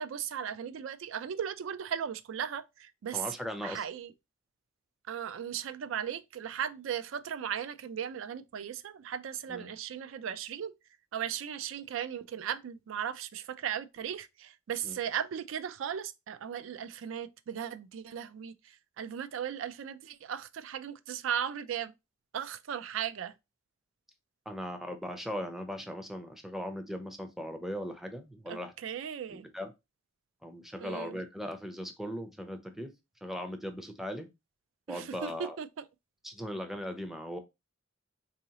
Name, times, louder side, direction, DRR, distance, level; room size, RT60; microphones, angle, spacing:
voice 1, 0.0-3.2 3.6-4.1 5.1-10.7 11.1-21.9 22.3-23.3 28.5-29.5 30.8-31.2 34.9-35.3 35.6-35.8, right 8 dB, 75° right, 0.3 m, -37 dB
voice 2, 3.1-3.8 9.5-9.7 14.8-15.0 24.5-28.7 29.3-29.7 30.4-32.9 33.2-34.3 34.9-35.6 36.2-37.4, equal, ahead, 0.5 m, -38 dB
3.8 x 2.7 x 2.8 m
head